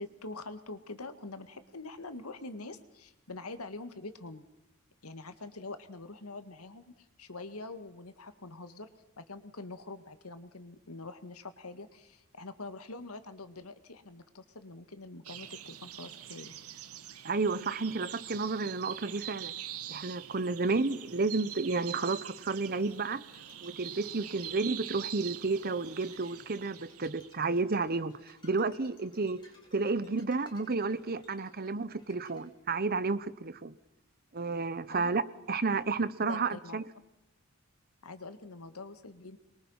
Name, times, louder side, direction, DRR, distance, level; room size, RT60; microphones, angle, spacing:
voice 1, 0.0-4.4 5.0-8.9 9.2-16.5 34.9-35.2 36.3-36.8 38.0-39.4, left 3 dB, 90° left, 2.0 m, -45 dB
sound 1, 15.2-27.3, right 11 dB, 90° right, 1.2 m, -44 dB
voice 2, 17.2-19.5 19.9-23.2 23.6-29.4 29.7-33.7 34.3-35.2 35.5-36.8, right 3 dB, 45° right, 1.0 m, -31 dB
Bowed string instrument, 23.3-32.5, left 2 dB, 20° left, 7.0 m, -62 dB
26.0 x 22.5 x 5.7 m
head